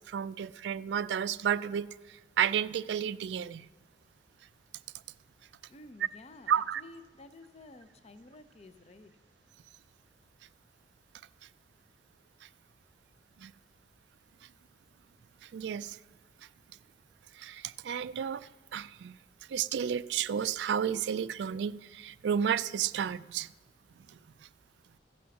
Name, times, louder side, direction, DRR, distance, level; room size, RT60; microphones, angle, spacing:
voice 1, 0.1-3.7 6.5-6.8 13.4-13.5 15.4-16.0 17.3-19.2 19.5-23.5 24.1-24.2, right 8 dB, 65° right, 0.3 m, -32 dB
voice 2, 5.7-9.2, left 2 dB, 35° left, 0.6 m, -52 dB
15.0 x 6.2 x 7.0 m
head